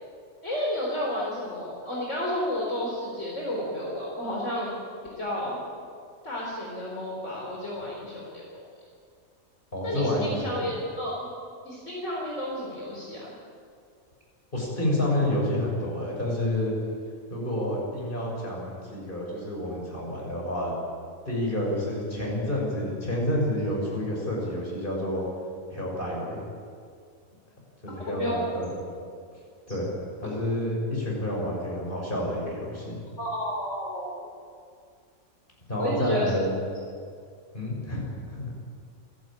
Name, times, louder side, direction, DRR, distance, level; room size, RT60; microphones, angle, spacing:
voice 1, 0.4-4.7 5.2-5.6 6.2-8.7 9.8-11.3 11.6-13.3 28.1-28.4 33.2-34.1 35.8-36.4, left 1 dB, 60° left, -4 dB, 4.5 m, -31 dB
voice 2, 9.7-10.6 14.5-16.7 17.3-20.7 21.2-25.2 25.7-26.4 27.8-28.7 29.7-29.9 30.2-33.0 35.7-36.6 37.5-38.5, left 1 dB, 40° left, -3 dB, 6.9 m, -29 dB
28.0 x 12.5 x 9.0 m, 2.2 s
omnidirectional pair, 1.4 m